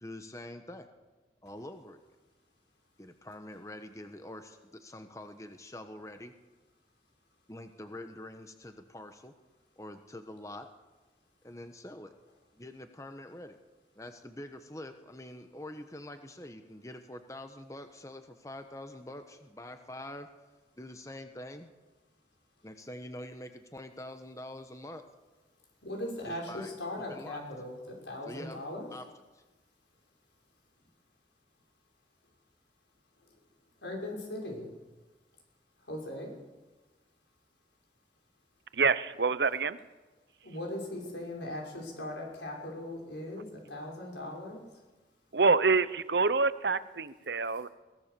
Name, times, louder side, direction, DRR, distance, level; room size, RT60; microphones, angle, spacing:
voice 1, 0.0-0.9 1.4-2.0 3.0-6.3 7.5-9.3 9.8-10.7 11.4-12.1 12.5-13.6 14.0-20.3 20.8-21.7 22.6-25.0 26.2-26.7 27.1-27.4 28.2-28.6 28.9-29.1 29.3-29.4, left 1 dB, 20° left, 7 dB, 1.1 m, -45 dB
voice 2, 25.8-28.9 33.2-33.3 33.8-34.7 35.8-36.4 40.4-44.8, left 1 dB, 85° left, 0 dB, 6.5 m, -39 dB
voice 3, 38.7-39.8 45.3-47.7, right 4 dB, 70° right, 15 dB, 0.9 m, -26 dB
22.0 x 17.0 x 6.9 m, 1.2 s
head